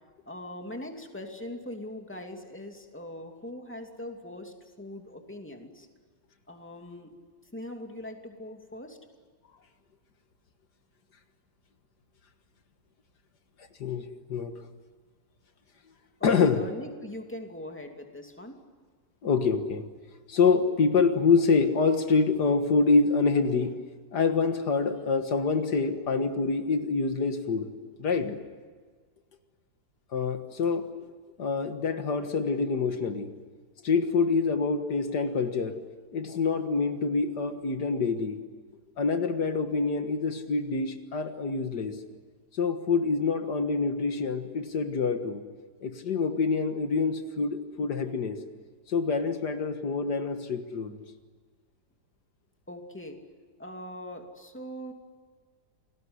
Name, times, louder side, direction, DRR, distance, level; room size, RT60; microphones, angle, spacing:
voice 1, 0.2-5.9 6.5-7.2 7.5-9.0 16.2-18.6 52.7-53.2 53.6-54.9, left 1 dB, 5° left, 3 dB, 2.7 m, -41 dB
voice 2, 13.8-14.5 16.2-16.6 19.2-19.8 20.3-23.8 24.1-27.7 28.0-28.4 30.1-31.1 31.4-33.3 33.8-35.8 36.1-38.4 39.0-42.0 42.5-45.4 45.8-48.4 48.9-51.0, left 4 dB, 75° left, 7 dB, 2.1 m, -26 dB
28.5 x 20.0 x 9.7 m, 1.5 s
omnidirectional pair, 1.8 m